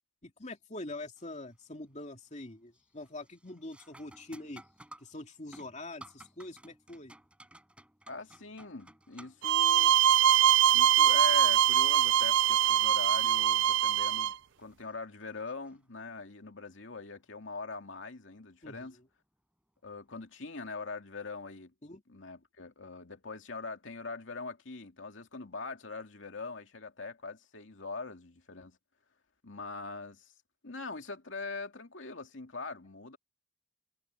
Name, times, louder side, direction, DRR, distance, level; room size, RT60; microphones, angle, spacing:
voice 1, 0.2-4.6 5.0-7.1 18.6-18.9 21.8-22.0, left 2 dB, 40° left, 2.6 m, -44 dB
sound 1, 1.2-1.6 2.0-2.4 2.7-16.3 18.8-18.9 19.7-19.9, right 1 dB, 5° right, 3.5 m, -57 dB
voice 2, 8.1-10.0 10.7-19.0 19.8-21.7 22.1-28.8 29.4-30.3 30.6-33.2, left 3 dB, 80° left, 2.4 m, -42 dB
sound 2, 9.4-14.3, right 10 dB, 70° right, 0.4 m, -23 dB
head